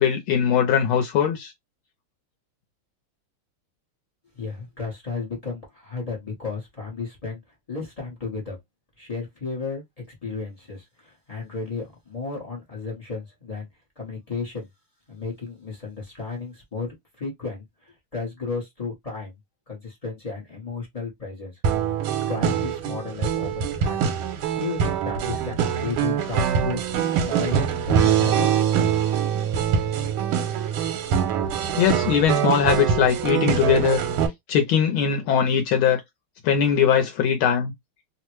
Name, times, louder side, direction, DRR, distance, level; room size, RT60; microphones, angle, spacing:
voice 1, 0.0-1.5 31.8-34.0 34.5-36.0 36.4-37.7, left 8 dB, 80° left, 1.4 m, -20 dB
voice 2, 4.3-7.4 7.7-8.6 9.0-13.7 14.0-14.7 15.1-19.4 19.7-21.6 22.3-24.0 24.5-26.8 27.1-27.6 27.8-28.6, left 4 dB, 50° left, 0.4 m, -33 dB
sound 1, 21.6-34.3, right 8 dB, 80° right, 1.5 m, -23 dB
3.5 x 2.1 x 3.0 m
omnidirectional pair, 2.4 m